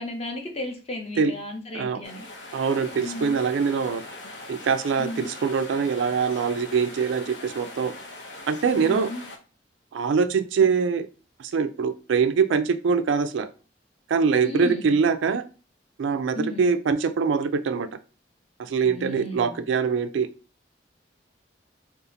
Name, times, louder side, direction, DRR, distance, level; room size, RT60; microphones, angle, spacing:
voice 1, 0.0-2.3 3.0-3.4 5.0-5.3 8.8-9.2 14.4-15.0 16.3-16.7 18.8-19.6, left 1 dB, 35° left, 3 dB, 0.7 m, -34 dB
sound 1, 2.0-9.4, left 2 dB, 70° left, 0.6 m, -41 dB
voice 2, 2.5-4.0 4.5-7.9 8.5-9.1 9.9-11.1 11.4-13.5 14.1-15.4 16.0-17.9 18.6-20.3, right 5 dB, 80° right, 10 dB, 0.4 m, -23 dB
2.7 x 2.4 x 3.8 m, 0.34 s
head